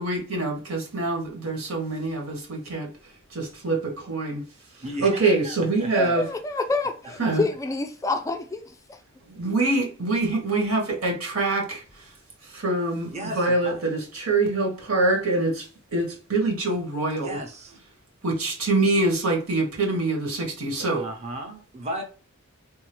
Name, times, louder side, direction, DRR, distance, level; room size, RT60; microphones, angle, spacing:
voice 1, 0.0-2.9 3.3-4.4 5.0-6.3 7.2-7.4 9.2-12.0 12.4-17.4 18.2-21.0, right 2 dB, 90° right, 1.6 m, -25 dB
voice 2, 4.8-5.2 5.4-6.2 7.2-7.3 13.1-14.1 17.2-17.8 20.9-22.0, right 1 dB, 30° right, 0.8 m, -35 dB
voice 3, 5.9-9.0, left 3 dB, 15° left, 0.3 m, -28 dB
3.7 x 2.7 x 3.1 m
head